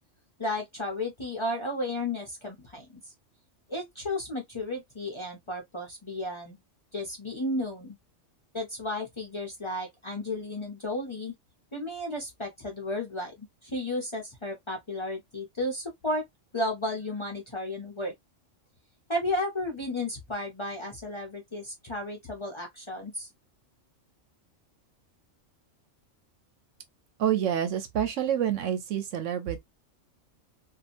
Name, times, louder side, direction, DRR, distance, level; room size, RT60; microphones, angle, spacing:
voice 1, 0.4-3.0 3.7-6.6 6.9-8.0 8.5-11.3 11.7-16.2 16.5-18.1 19.1-23.3, left 1 dB, 35° left, 0.5 m, -33 dB
voice 2, 27.2-29.6, right 10 dB, 80° right, 1.0 m, -27 dB
2.8 x 2.3 x 2.5 m
omnidirectional pair, 1.3 m